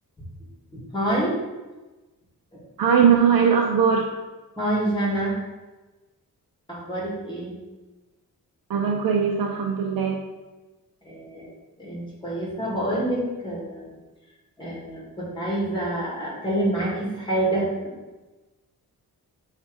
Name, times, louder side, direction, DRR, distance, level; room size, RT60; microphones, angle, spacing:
voice 1, 0.7-1.4 2.5-2.6 4.6-5.4 6.7-7.6 11.0-11.5 11.8-13.9 14.6-17.9, right 1 dB, 15° left, -6 dB, 2.1 m, -27 dB
voice 2, 2.8-4.1 8.7-10.2, right 7 dB, 80° right, 1 dB, 0.7 m, -20 dB
7.2 x 3.3 x 4.7 m, 1.2 s
wide cardioid pair, 165°, 35 cm